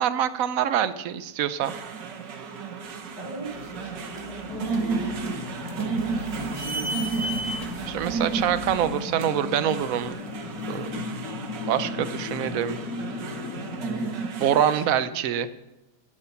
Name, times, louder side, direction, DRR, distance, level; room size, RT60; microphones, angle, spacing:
voice 1, 0.0-1.7 7.9-10.2 10.7-10.9 11.7-12.8 14.4-15.5, right 10 dB, 60° right, 13 dB, 1.0 m, -25 dB
sound 1, 1.6-14.9, right 5 dB, 75° right, 1.9 m, -33 dB
voice 2, 3.2-6.0 6.3-7.7 10.7-11.2 13.8-14.1 14.7-15.1, equal, 70° left, -2 dB, 5.4 m, -39 dB
sound 2, 3.5-10.9, right 1 dB, 20° right, 1.6 m, -38 dB
sound 3, 4.5-14.2, left 4 dB, 55° left, 1.1 m, -36 dB
14.0 x 11.5 x 5.8 m, 0.99 s
omnidirectional pair, 1.9 m